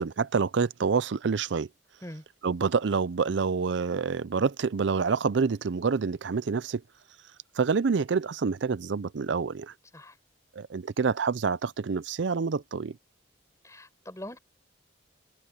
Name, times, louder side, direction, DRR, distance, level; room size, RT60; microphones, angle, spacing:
voice 1, 0.0-1.7 2.4-6.8 7.6-9.7 10.6-13.0, right 5 dB, 70° right, 0.5 m, -27 dB
voice 2, 13.6-14.4, left 1 dB, 15° left, 4.8 m, -42 dB
head